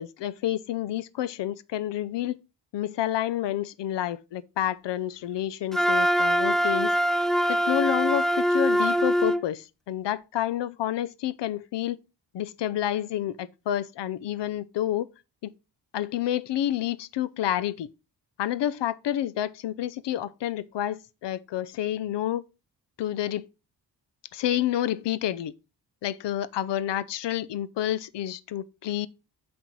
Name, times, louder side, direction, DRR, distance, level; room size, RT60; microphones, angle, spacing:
voice 1, 0.0-2.4 2.7-6.9 7.5-12.0 12.3-15.1 15.4-15.5 15.9-17.9 18.4-22.4 23.0-23.5 24.3-25.5 26.0-29.1, left 12 dB, 85° left, 0.6 m, -29 dB
Wind instrument woodwind instrument, 5.7-9.4, equal, ahead, 0.4 m, -23 dB
7.8 x 4.4 x 4.6 m
cardioid pair, 100°, 41 cm